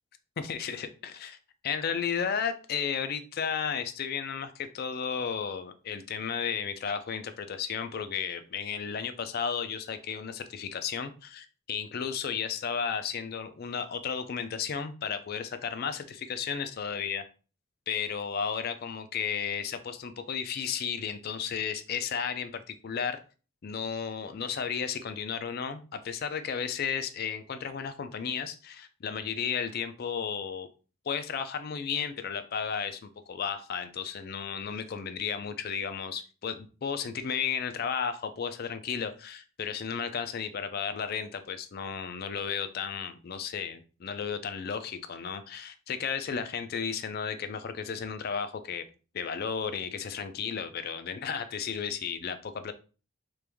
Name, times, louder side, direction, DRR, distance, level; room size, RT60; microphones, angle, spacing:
voice 1, 0.4-1.4 1.6-17.2 17.9-23.2 23.6-30.7 31.1-48.8 49.1-52.7, left 7 dB, 50° left, 10 dB, 0.4 m, -33 dB
3.1 x 2.5 x 3.4 m, 0.36 s
head